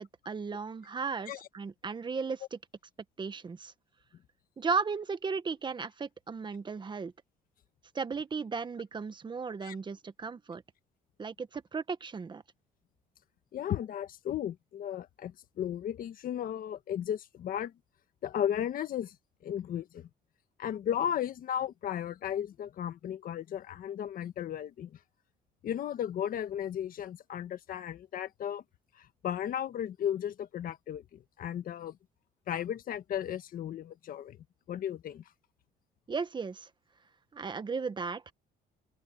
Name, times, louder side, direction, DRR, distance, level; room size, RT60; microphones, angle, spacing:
voice 1, 0.0-2.6 3.2-3.7 4.6-7.1 7.9-10.6 11.2-12.4 36.1-36.7 37.3-38.2, right 5 dB, 25° right, 1.2 m, -35 dB
voice 2, 13.5-17.7 18.2-19.2 19.4-20.1 20.6-24.9 25.6-28.6 29.0-32.0 32.5-34.4 34.7-35.2, left 10 dB, 55° left, 1.7 m, -35 dB
open air
cardioid pair, 110°, 17 cm